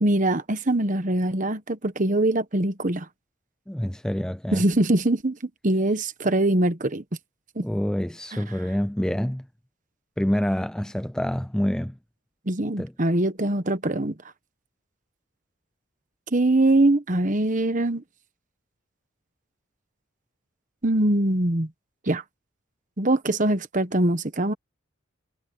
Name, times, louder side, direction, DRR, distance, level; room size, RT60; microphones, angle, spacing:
voice 1, 0.0-3.1 4.5-7.0 7.6-7.7 8.3-8.4 12.5-14.2 16.3-18.0 20.8-21.7 22.1-22.2 23.0-24.5, right 1 dB, 35° right, 1.1 m, -23 dB
voice 2, 3.7-4.6 7.6-9.5 10.2-12.0 12.8-12.9, equal, 5° left, 0.3 m, -27 dB
head